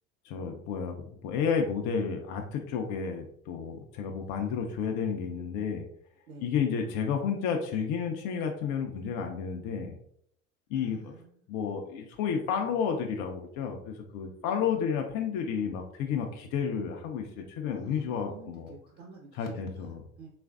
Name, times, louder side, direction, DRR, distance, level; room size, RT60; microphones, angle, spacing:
voice 1, 0.3-1.0 1.2-5.8 6.4-10.0 10.7-11.1 11.5-18.7 19.4-20.0, left 6 dB, 45° left, 3 dB, 0.5 m, -31 dB
voice 2, 3.9-4.4 6.3-6.6 10.7-11.5 17.7-20.3, right 3 dB, 50° right, -3 dB, 1.0 m, -52 dB
3.1 x 2.4 x 2.3 m, 0.66 s
hypercardioid pair, 85°, 41 cm